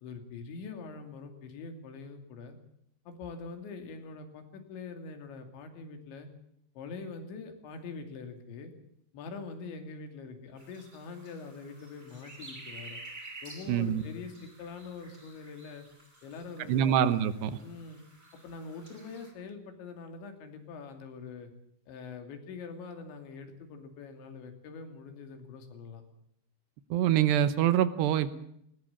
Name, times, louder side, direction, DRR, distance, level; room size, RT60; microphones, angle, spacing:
voice 1, 0.0-2.6 3.1-6.3 6.8-8.7 9.1-13.0 13.4-15.9 16.2-17.0 17.6-18.0 18.3-21.5 21.9-26.0, left 4 dB, 90° left, 6 dB, 4.9 m, -44 dB
sound 1, 10.6-19.3, right 2 dB, 10° right, 4.8 m, -51 dB
voice 2, 13.7-14.0 16.7-17.6 26.9-28.4, right 10 dB, 75° right, 13 dB, 3.1 m, -25 dB
20.0 x 19.0 x 7.2 m, 0.73 s
omnidirectional pair, 5.1 m